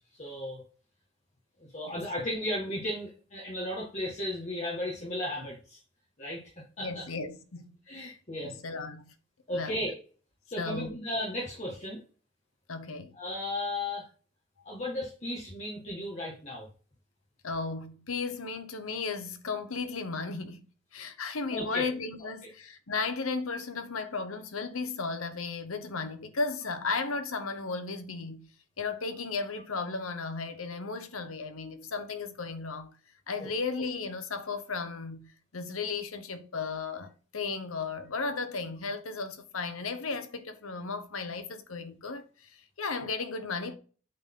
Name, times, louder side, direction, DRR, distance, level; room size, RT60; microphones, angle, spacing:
voice 1, 0.2-0.6 1.7-5.8 6.2-6.4 6.8-7.0 7.9-8.5 9.5-9.9 10.5-12.0 13.1-14.1 14.6-16.7 21.5-21.9, left 1 dB, 35° left, 1.7 m, -35 dB
voice 2, 6.8-9.1 9.5-9.8 10.6-11.0 12.7-13.1 17.4-20.6 20.9-28.5 28.8-32.9 33.3-43.7, left 4 dB, 90° left, 1.1 m, -35 dB
8.6 x 4.1 x 3.8 m
head